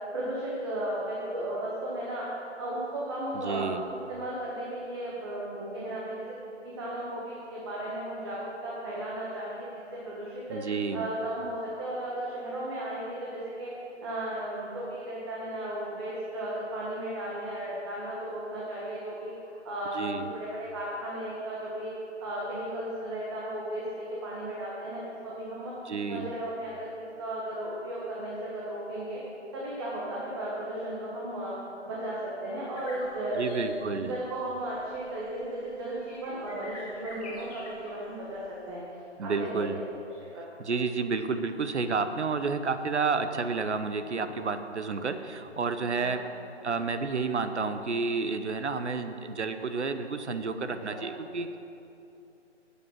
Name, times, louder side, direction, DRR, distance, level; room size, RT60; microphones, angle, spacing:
voice 1, 0.1-2.2 2.6-3.7 4.1-10.4 10.9-13.7 14.0-19.3 19.6-21.9 22.2-25.7 26.1-29.2 29.5-31.5 31.8-32.1 32.4-33.6 34.1-38.4 38.7-38.8 39.2-39.6 40.3-40.4 46.0-46.1 50.9-51.0, right 1 dB, 20° right, -6 dB, 1.7 m, -35 dB
voice 2, 3.4-3.8 10.5-11.1 19.9-20.3 25.8-26.3 33.4-34.2 39.2-39.8 40.6-46.2 46.6-51.6, right 4 dB, 70° right, 9 dB, 1.0 m, -30 dB
sound 1, 32.8-38.8, left 2 dB, 35° left, 2.6 m, -47 dB
12.5 x 8.5 x 6.0 m, 2.8 s
figure-of-eight pair, 160°, 36 cm